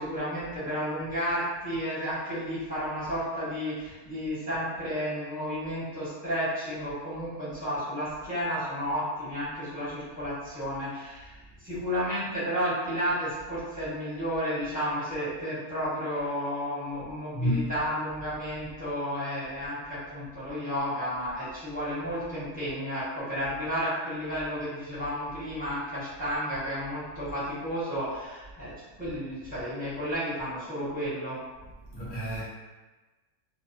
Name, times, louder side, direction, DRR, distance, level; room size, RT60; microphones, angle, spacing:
voice 1, 0.0-11.3 11.6-31.4, equal, 5° right, -12 dB, 0.9 m, -32 dB
voice 2, 17.3-17.7 31.9-32.4, equal, 55° left, -9 dB, 0.9 m, -29 dB
2.6 x 2.1 x 2.5 m, 1.2 s
omnidirectional pair, 1.6 m